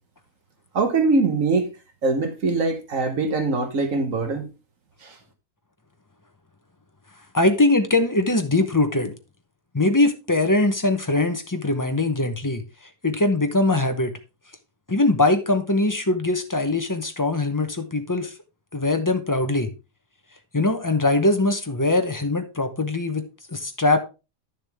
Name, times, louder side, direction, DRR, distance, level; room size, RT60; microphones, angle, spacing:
voice 1, 0.7-1.7 2.0-4.5 5.0-5.2, right 3 dB, 55° right, 1.6 m, -22 dB
voice 2, 7.3-9.1 9.7-12.6 13.0-14.1 14.9-18.3 18.7-19.7 20.5-24.0, left 2 dB, 15° left, 0.7 m, -21 dB
10.0 x 6.9 x 3.5 m
omnidirectional pair, 1.7 m